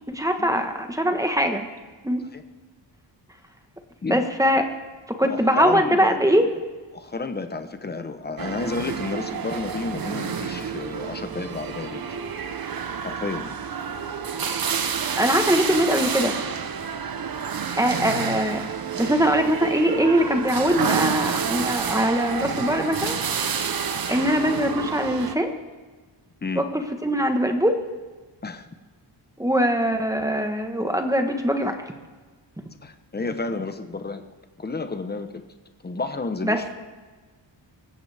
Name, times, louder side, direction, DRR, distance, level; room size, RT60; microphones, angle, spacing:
voice 1, 0.1-1.7 2.0-2.2 4.1-4.6 5.1-6.5 15.2-16.3 17.8-18.6 19.0-23.2 24.1-25.5 26.5-27.8 29.4-31.9 36.4-36.6, equal, 5° right, 5 dB, 1.3 m, -22 dB
voice 2, 5.2-6.2 6.9-12.0 13.0-13.6 23.9-24.0 26.4-26.6 28.4-28.7 32.8-34.2 34.6-35.3 35.8-36.7, left 3 dB, 20° left, 8 dB, 0.9 m, -31 dB
sound 1, 8.4-25.3, right 6 dB, 50° right, 1.0 m, -29 dB
24.5 x 15.0 x 3.5 m, 1.3 s
wide cardioid pair, 155°, 44 cm